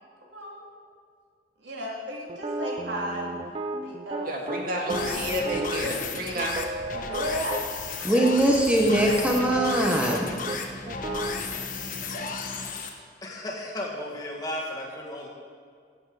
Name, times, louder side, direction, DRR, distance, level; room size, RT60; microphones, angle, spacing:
voice 1, 0.2-0.7 1.6-3.4 3.8-5.0 7.1-7.6 7.9-8.0, equal, 90° right, -3 dB, 2.8 m, -34 dB
sound 1, 2.3-7.6 8.1-8.3 8.8-10.2 10.5-10.6 10.9-11.5, right 2 dB, 35° right, 0.5 m, -34 dB
voice 2, 4.3-6.5, right 1 dB, 55° right, 0 dB, 2.0 m, -30 dB
sound 2, 4.9-12.9, left 4 dB, 50° left, 1.1 m, -33 dB
voice 3, 8.0-10.4, right 1 dB, 5° right, 0 dB, 1.0 m, -22 dB
voice 4, 11.8-12.2 12.5-12.7 13.2-15.3, left 1 dB, 20° left, -3 dB, 1.9 m, -35 dB
16.0 x 8.0 x 4.9 m, 2.2 s
head